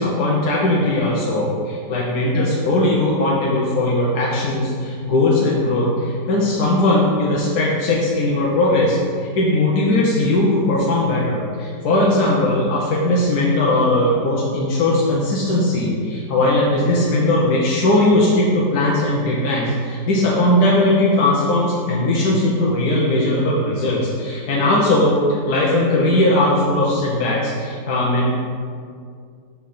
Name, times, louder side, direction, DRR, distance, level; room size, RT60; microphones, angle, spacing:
voice 1, 0.0-1.5 1.9-25.2 25.5-28.3, left 1 dB, 65° left, -4 dB, 1.3 m, -18 dB
5.9 x 4.8 x 5.6 m, 2.2 s
omnidirectional pair, 1.9 m